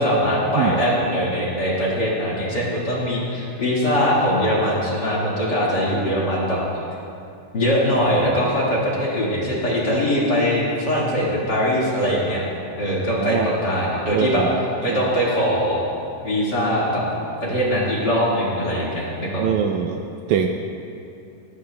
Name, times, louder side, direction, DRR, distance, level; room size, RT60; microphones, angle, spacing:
voice 1, 0.0-6.6 7.5-12.4 12.8-14.4 14.8-15.8 16.2-17.0 17.4-19.6, equal, 40° left, -5 dB, 2.0 m, -21 dB
voice 2, 13.2-13.5 14.1-14.6 14.9-15.0 19.4-20.0 20.3-20.5, right 8 dB, 80° right, 4 dB, 1.8 m, -22 dB
17.5 x 16.0 x 2.2 m, 2.7 s
omnidirectional pair, 3.8 m